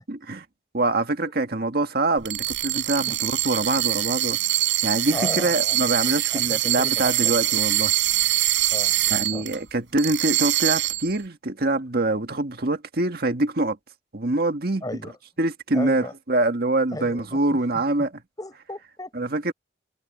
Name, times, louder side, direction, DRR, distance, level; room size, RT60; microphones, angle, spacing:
voice 1, 0.1-0.4 0.7-4.4 4.8-7.9 9.1-13.8 14.1-14.8 15.4-18.1 19.1-19.5, right 2 dB, 55° right, 1.8 m, -24 dB
sound 1, 2.2-9.6 10.0-11.2, right 15 dB, 85° right, 5.4 m, -24 dB
voice 2, 5.1-5.8 6.3-7.3 8.7-9.4 14.8-15.1 15.7-16.1 16.9-17.8 18.4-19.1, left 1 dB, 20° left, 5.2 m, -35 dB
head